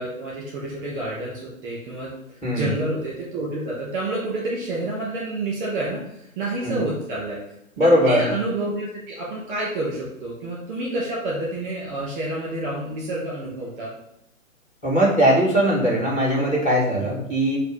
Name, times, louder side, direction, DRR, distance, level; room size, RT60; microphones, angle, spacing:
voice 1, 0.0-2.1 2.5-7.4 7.8-13.9, right 2 dB, 25° right, -5 dB, 2.2 m, -29 dB
voice 2, 7.8-8.3 14.8-17.6, equal, 15° left, -5 dB, 2.5 m, -20 dB
7.9 x 2.6 x 5.1 m, 0.78 s
hypercardioid pair, 145°, 42 cm